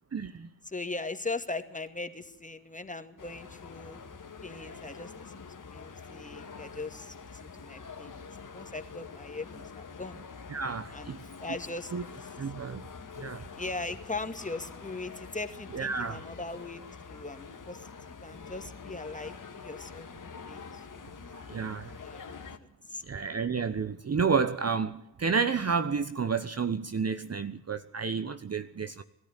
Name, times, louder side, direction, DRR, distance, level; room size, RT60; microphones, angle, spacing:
voice 1, 0.1-0.5 10.5-11.2 11.9-12.0 12.4-12.9 13.2-13.5 15.7-16.2 21.3-22.0 23.1-29.0, right 5 dB, 30° right, 1.1 m, -30 dB
voice 2, 0.6-4.0 4.4-10.2 10.9-11.9 12.2-12.3 13.6-21.1 22.0-22.4 22.8-23.0, left 3 dB, 15° left, 2.1 m, -40 dB
sound 1, 3.2-22.6, left 5 dB, 40° left, 2.2 m, -46 dB
20.5 x 13.5 x 10.0 m
hypercardioid pair, 45°, 49 cm